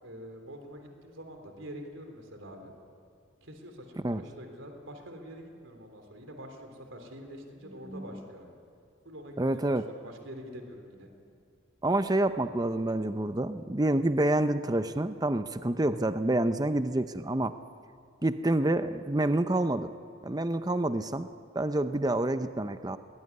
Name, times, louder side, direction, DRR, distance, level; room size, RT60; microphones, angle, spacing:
voice 1, 0.0-2.7 3.4-8.5 9.1-11.1, equal, 70° right, 5 dB, 3.5 m, -46 dB
voice 2, 9.4-9.8 11.8-17.5 18.2-19.9 20.2-21.3 21.5-23.0, right 1 dB, 20° right, 11 dB, 0.6 m, -28 dB
22.0 x 19.5 x 9.7 m, 2.3 s
head